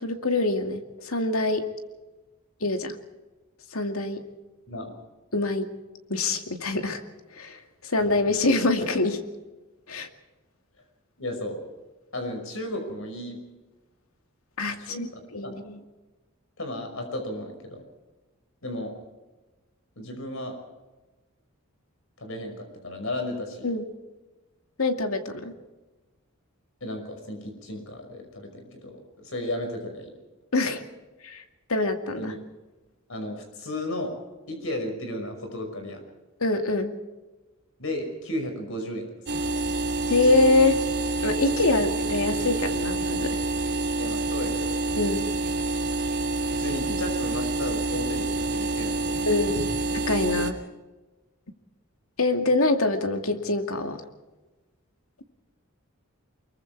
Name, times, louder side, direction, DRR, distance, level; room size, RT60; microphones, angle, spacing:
voice 1, 0.0-1.7 2.6-2.9 3.7-4.2 5.3-5.7 6.1-7.0 7.4-9.2 9.9-10.1 14.6-15.1 15.3-15.8 23.6-23.9 24.8-25.5 30.5-30.8 31.2-31.4 31.7-32.3 36.4-36.9 40.1-40.8 41.2-43.4 45.0-45.3 49.3-50.6 52.2-54.0, left 2 dB, 90° left, 6 dB, 2.3 m, -25 dB
voice 2, 11.2-11.6 12.1-13.4 14.8-15.1 15.4-15.6 16.6-17.8 18.6-18.9 20.0-20.6 22.2-23.7 26.8-30.1 32.1-32.4 33.1-36.0 37.8-39.5 44.0-44.8 46.5-49.3, left 1 dB, 70° left, 5 dB, 5.6 m, -34 dB
sound 1, 39.3-50.5, right 2 dB, 55° right, 3.0 m, -27 dB
24.5 x 22.5 x 4.7 m, 1.2 s
head